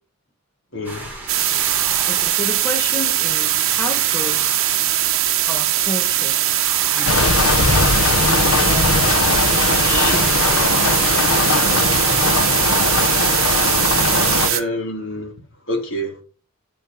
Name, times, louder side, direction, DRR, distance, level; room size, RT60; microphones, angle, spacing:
voice 1, 0.7-1.6 14.4-15.3 15.7-16.2, equal, 60° left, 3.8 m, -27 dB
sound 1, 0.8-11.3, right 2 dB, 10° right, 4.2 m, -35 dB
sound 2, 1.3-14.6, right 12 dB, 75° right, 1.1 m, -20 dB
voice 2, 2.1-4.7 5.5-6.4 6.9-9.3 9.8-12.8, left 1 dB, 10° left, 1.6 m, -32 dB
sound 3, 7.1-14.5, left 4 dB, 80° left, 1.0 m, -19 dB
9.2 x 7.7 x 5.6 m
head